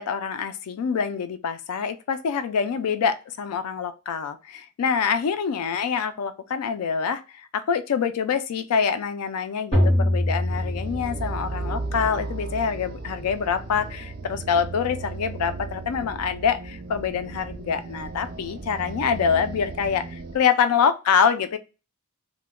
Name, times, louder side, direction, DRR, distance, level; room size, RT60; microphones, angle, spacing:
voice 1, 0.0-21.6, left 6 dB, 90° left, 11 dB, 0.4 m, -25 dB
sound 1, 9.7-11.7, left 1 dB, 25° left, 1.5 m, -23 dB
sound 2, 10.5-20.4, right 3 dB, 45° right, 0.4 m, -35 dB
2.9 x 2.1 x 3.5 m, 0.31 s
head